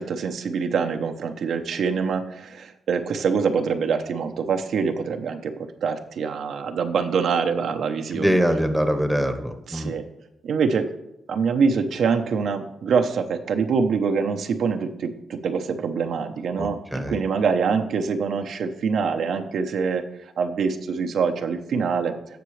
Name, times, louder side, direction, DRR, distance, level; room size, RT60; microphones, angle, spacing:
voice 1, 0.0-8.4 9.7-10.0 10.4-10.9 11.3-20.1 20.4-22.1, right 5 dB, 75° right, 5 dB, 1.0 m, -25 dB
voice 2, 8.1-9.9 16.6-17.2, equal, ahead, 6 dB, 1.1 m, -23 dB
17.0 x 6.0 x 3.3 m, 0.89 s
cardioid pair, 125°, 0 cm